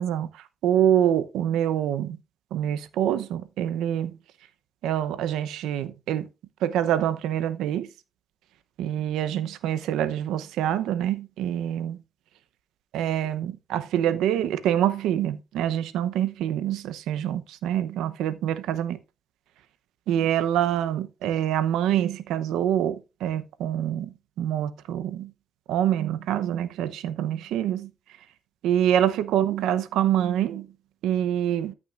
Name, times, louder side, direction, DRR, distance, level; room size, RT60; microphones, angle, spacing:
voice 1, 0.0-2.2 2.5-4.2 4.8-6.3 6.6-7.9 8.8-12.0 12.9-19.0 20.1-25.3 25.7-27.9 28.6-30.7 31.0-31.7, right 10 dB, 90° right, 0.8 m, -26 dB
14.0 x 6.0 x 2.5 m
cardioid pair, 90°, 0 cm